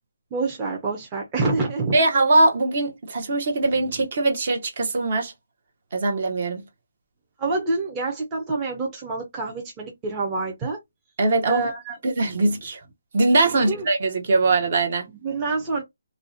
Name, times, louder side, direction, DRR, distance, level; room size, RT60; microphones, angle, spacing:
voice 1, 0.3-1.9 7.4-10.8 11.5-12.0 13.5-13.9 15.1-15.8, right 3 dB, 20° right, 0.6 m, -27 dB
voice 2, 1.9-5.3 5.9-6.6 11.2-11.7 12.0-12.8 13.1-15.1, right 2 dB, 50° right, 0.8 m, -21 dB
2.5 x 2.1 x 2.6 m
hypercardioid pair, 160°, 0 cm